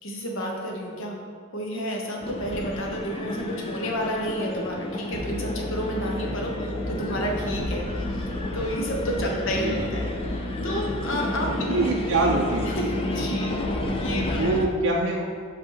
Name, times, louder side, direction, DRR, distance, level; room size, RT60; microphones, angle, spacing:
voice 1, 0.0-1.2 1.5-7.8 8.1-8.2 8.5-11.7 12.7-13.5 13.9-14.5, equal, 65° left, 0 dB, 1.2 m, -31 dB
sound 1, 2.2-14.7, left 1 dB, 25° left, 0.6 m, -32 dB
Musical instrument, 5.1-14.4, left 1 dB, 50° left, 1.4 m, -33 dB
voice 2, 11.7-12.9 14.4-15.2, right 2 dB, 65° right, -2 dB, 0.6 m, -24 dB
5.5 x 4.5 x 5.6 m, 2.1 s
head